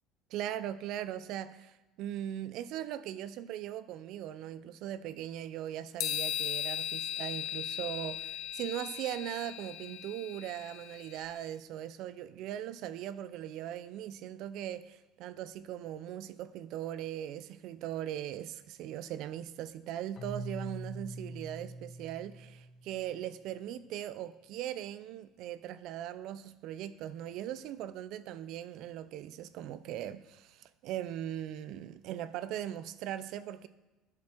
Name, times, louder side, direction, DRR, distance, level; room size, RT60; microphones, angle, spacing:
voice 1, 0.3-33.7, right 11 dB, 65° right, 0.5 m, -39 dB
sound 1, 6.0-11.3, left 11 dB, 65° left, 1.3 m, -38 dB
Keyboard (musical), 20.2-23.1, right 1 dB, 45° left, 1.9 m, -43 dB
12.0 x 7.5 x 4.5 m
supercardioid pair, 100°, 0 cm